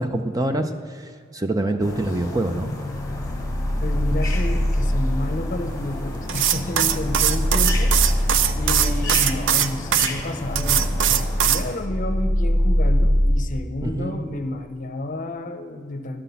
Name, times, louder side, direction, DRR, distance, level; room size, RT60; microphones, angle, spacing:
voice 1, 0.0-2.7 13.8-14.2, right 1 dB, 20° right, 7 dB, 0.5 m, -25 dB
sound 1, 1.8-11.8, left 2 dB, 15° left, 1.2 m, -33 dB
sound 2, 2.9-13.4, equal, 55° right, 1.3 m, -23 dB
voice 2, 3.8-16.2, left 1 dB, 45° left, 8 dB, 0.7 m, -31 dB
scythe sharpening, 6.3-10.1 10.6-11.6, right 10 dB, 75° right, 0.5 m, -20 dB
11.0 x 5.9 x 6.9 m, 2.1 s
head